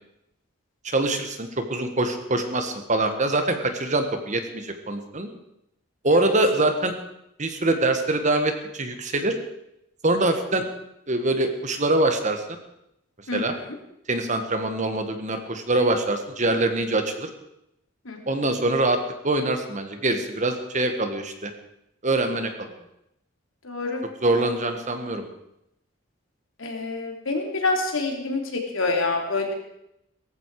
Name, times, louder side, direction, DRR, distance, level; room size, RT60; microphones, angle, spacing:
voice 1, 0.8-5.3 6.0-6.9 7.4-9.4 10.0-10.6 11.1-12.4 13.3-13.5 14.1-17.3 18.3-19.0 19.2-21.5 22.0-22.7 24.2-25.3, right 2 dB, 35° right, 7 dB, 1.6 m, -24 dB
voice 2, 13.3-13.6 18.0-18.2 23.6-24.0 26.6-29.5, left 3 dB, 70° left, 2 dB, 3.3 m, -27 dB
18.0 x 14.5 x 4.9 m, 0.81 s
head